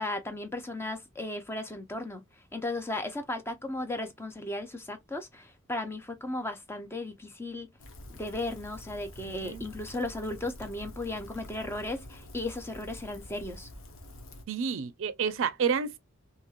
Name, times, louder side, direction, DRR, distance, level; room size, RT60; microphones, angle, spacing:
voice 1, 0.0-7.7 8.1-13.7, left 2 dB, 10° left, 0.5 m, -36 dB
Rain, 7.8-14.4, left 1 dB, 70° left, 0.8 m, -47 dB
voice 2, 14.5-16.0, right 6 dB, 65° right, 0.4 m, -29 dB
3.0 x 2.7 x 2.3 m
head